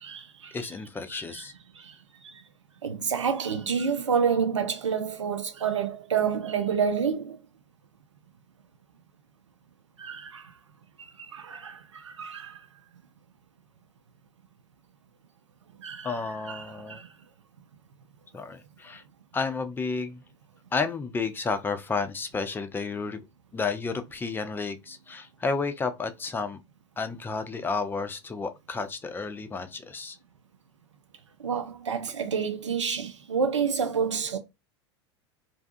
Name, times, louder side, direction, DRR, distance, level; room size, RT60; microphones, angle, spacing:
voice 1, 0.0-0.6 1.3-1.4 1.8-1.9 2.2-2.3 2.8-7.4 10.0-10.4 11.3-12.6 15.8-16.1 16.5-17.1 31.4-34.4, right 6 dB, 85° right, 0.5 m, -28 dB
voice 2, 0.5-1.5 16.0-17.0 18.3-19.0 19.3-20.2 20.7-23.2 23.5-26.6 27.0-30.2, left 4 dB, 15° left, 0.5 m, -31 dB
2.6 x 2.3 x 2.5 m
hypercardioid pair, 90°, 15 cm